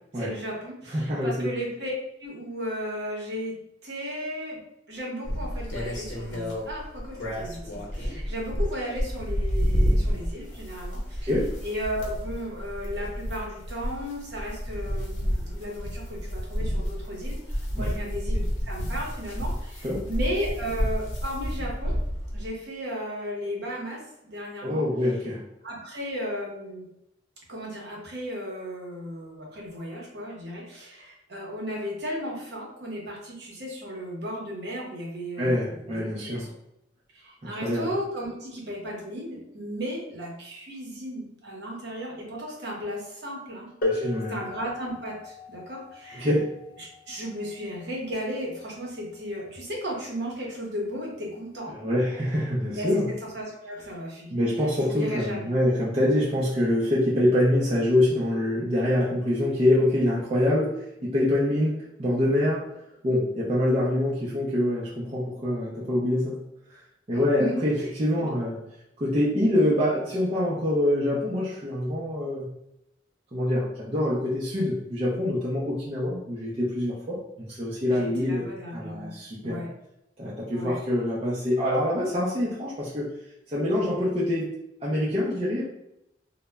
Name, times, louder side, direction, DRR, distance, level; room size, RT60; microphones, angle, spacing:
voice 1, 0.1-1.9 2.2-3.6 3.8-4.6 4.9-11.3 11.6-21.9 22.3-24.9 25.6-26.9 27.5-36.5 37.1-43.7 44.0-46.3 46.8-51.7 52.7-54.3 54.6-55.5 67.1-67.9 68.2-68.3 77.8-79.1 79.4-79.7 80.5-80.8, equal, 60° right, -2 dB, 0.8 m, -35 dB
voice 2, 0.9-1.5 11.2-11.5 17.8-17.9 19.8-20.1 24.6-25.4 35.4-36.5 37.4-37.9 43.8-44.4 46.1-46.5 51.7-53.1 54.3-62.7 63.0-66.4 67.1-68.6 69.0-72.5 73.3-78.5 78.7-79.7 80.2-83.1 83.5-84.5 84.8-85.6, left 1 dB, 30° right, -7 dB, 0.4 m, -25 dB
sound 1, 5.2-22.5, equal, 85° left, 0.7 m, -30 dB
sound 2, 43.8-49.2 50.3-50.4 51.2-51.4, left 2 dB, 50° left, 0.5 m, -36 dB
2.0 x 2.0 x 3.3 m, 0.83 s
head